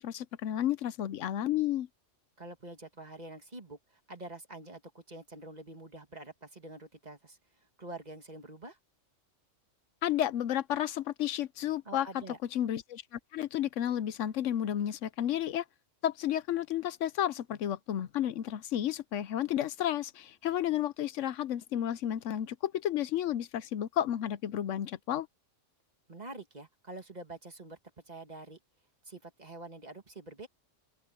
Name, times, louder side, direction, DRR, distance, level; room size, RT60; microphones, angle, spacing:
voice 1, 0.0-1.9 10.0-12.1 12.5-15.6 16.0-25.3, left 11 dB, 75° left, 1.0 m, -32 dB
voice 2, 2.4-7.4 7.8-8.8 11.9-12.4 26.1-27.8 28.1-28.6 29.0-30.5, right 2 dB, 35° right, 2.1 m, -46 dB
open air
omnidirectional pair, 1.3 m